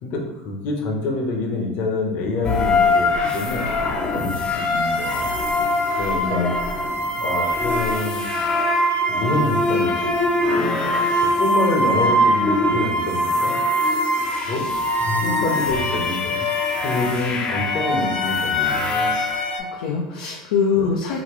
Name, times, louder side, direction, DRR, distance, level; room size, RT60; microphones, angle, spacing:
voice 1, 0.0-3.7 4.1-5.3 6.0-6.5 7.1-8.2 9.1-10.5 11.2-14.7 15.0-19.1 20.8-20.9, left 2 dB, 55° left, 1 dB, 0.9 m, -27 dB
sound 1, 2.4-19.6, left 1 dB, 30° left, 0.6 m, -22 dB
voice 2, 6.2-6.6 19.6-21.2, left 5 dB, 70° left, -2 dB, 0.5 m, -23 dB
3.9 x 2.2 x 3.1 m, 1.1 s
hypercardioid pair, 95°, 3 cm